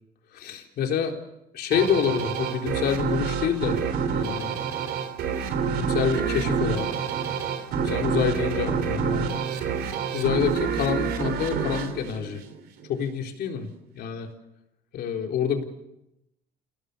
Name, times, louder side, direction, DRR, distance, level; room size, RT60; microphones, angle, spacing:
voice 1, 0.3-1.2 1.5-3.8 4.1-4.5 5.7-6.9 7.8-9.4 10.1-12.4 12.9-13.7 13.9-14.3 14.9-15.6, left 7 dB, 70° left, 2 dB, 3.9 m, -27 dB
sound 1, 1.7-12.9, right 6 dB, 75° right, 3.3 m, -27 dB
28.0 x 17.5 x 6.9 m, 0.87 s
cardioid pair, 110°, 17 cm